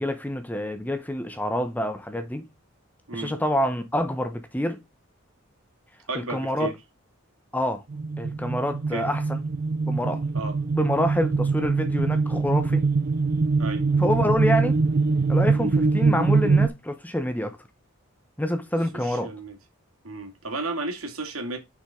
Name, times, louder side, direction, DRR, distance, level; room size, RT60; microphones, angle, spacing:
voice 1, 0.0-2.5 3.1-4.8 6.1-6.7 7.5-7.8 8.2-9.4 9.9-10.2 10.7-12.9 14.0-14.8 15.3-17.6 18.4-19.3, left 1 dB, 10° left, 0.8 m, -27 dB
voice 2, 6.1-6.7 8.9-9.1 10.3-10.6 13.6-13.9 19.0-19.6 20.0-21.6, right 2 dB, 85° right, 2.6 m, -33 dB
sound 1, 7.9-16.7, right 4 dB, 45° right, 0.4 m, -23 dB
7.2 x 6.1 x 3.7 m
head